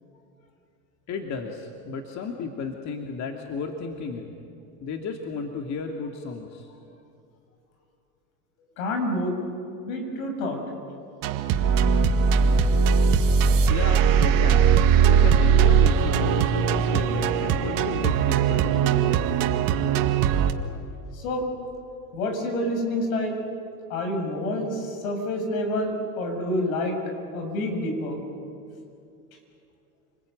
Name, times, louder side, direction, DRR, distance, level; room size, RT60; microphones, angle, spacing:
voice 1, 1.1-4.3 4.8-6.7 13.7-14.8 15.1-19.2, left 4 dB, 40° left, 3 dB, 2.7 m, -34 dB
voice 2, 8.8-9.4 9.8-10.6 21.1-21.4 22.1-23.4 23.9-27.0 27.3-28.2, left 1 dB, 75° left, 4 dB, 7.2 m, -28 dB
sound 1, 11.2-20.5, right 7 dB, 50° right, 2.0 m, -20 dB
29.0 x 21.0 x 9.4 m, 2.5 s
hypercardioid pair, 105°, 42 cm